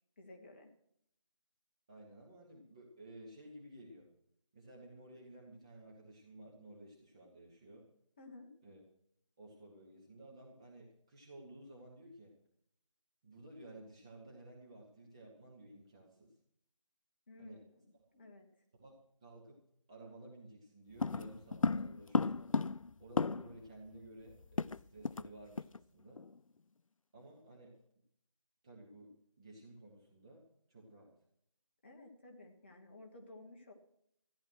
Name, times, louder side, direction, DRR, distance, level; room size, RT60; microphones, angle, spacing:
voice 1, 0.2-0.7 8.2-8.5 17.3-17.6 18.1-18.5 31.8-33.7, left 2 dB, 20° left, 2 dB, 1.3 m, -54 dB
voice 2, 1.9-4.1 4.5-7.9 8.6-8.8 9.4-12.4 13.2-16.3 17.4-17.6 18.7-19.6 19.9-22.6 23.0-26.3 27.1-27.8 28.6-30.4 30.7-31.1, right 1 dB, 10° right, -3 dB, 0.9 m, -55 dB
sound 1, 21.0-23.7 23.9-24.0 24.3-25.3 25.6-25.8 26.2-26.4, left 4 dB, 85° left, 0.5 m, -34 dB
14.0 x 10.5 x 6.2 m, 0.71 s
figure-of-eight pair, 170°, 17 cm